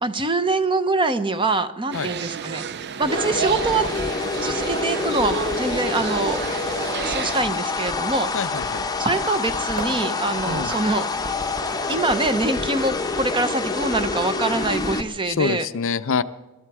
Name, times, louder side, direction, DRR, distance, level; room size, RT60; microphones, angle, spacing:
voice 1, 0.0-2.6 3.0-3.9 4.4-6.4 7.0-8.3 9.0-11.1 11.9-15.7, right 3 dB, 20° right, 11 dB, 0.8 m, -24 dB
sound 1, 1.9-7.4, right 7 dB, 50° right, 0.5 m, -30 dB
sound 2, 3.0-15.0, left 3 dB, 15° left, 0.8 m, -27 dB
voice 2, 8.3-8.9 10.5-10.7 15.3-16.2, left 5 dB, 60° left, 13 dB, 0.6 m, -25 dB
sound 3, 9.8-15.6, right 2 dB, 80° right, 3.5 m, -40 dB
24.5 x 12.5 x 4.8 m, 1.1 s
head